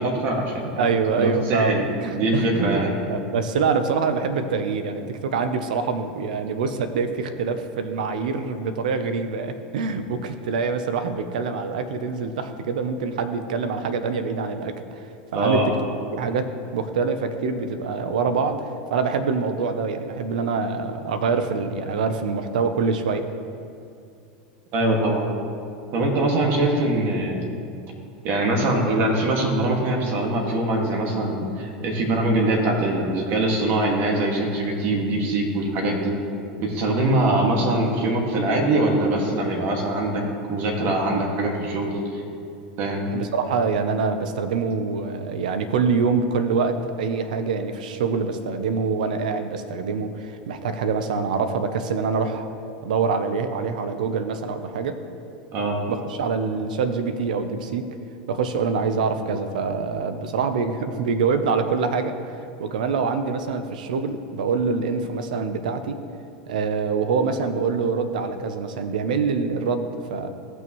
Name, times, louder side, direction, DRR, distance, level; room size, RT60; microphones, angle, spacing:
voice 1, 0.0-1.8 2.1-3.0 15.3-15.7 24.7-25.3 25.9-27.4 28.2-36.1 36.6-40.2 40.5-42.2 42.8-43.1 55.5-55.8, right 2 dB, 55° right, 0 dB, 2.0 m, -23 dB
voice 2, 0.8-2.8 3.1-15.7 16.1-23.3 43.1-52.5 52.8-55.0 55.9-57.9 58.3-62.1 62.6-66.0 66.5-70.3, right 5 dB, 85° right, 9 dB, 0.7 m, -25 dB
15.0 x 6.2 x 3.1 m, 2.4 s
hypercardioid pair, 100°, 4 cm